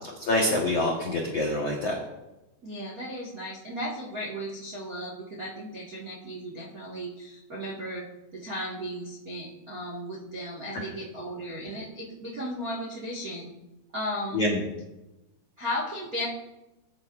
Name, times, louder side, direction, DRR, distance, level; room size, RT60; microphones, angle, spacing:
voice 1, 0.1-2.0 14.3-14.6, left 1 dB, 70° left, -1 dB, 1.4 m, -26 dB
voice 2, 2.6-8.1 8.3-13.5 13.9-14.4 15.6-16.3, equal, 55° right, -4 dB, 0.9 m, -35 dB
21.0 x 10.5 x 2.6 m, 0.99 s
omnidirectional pair, 5.3 m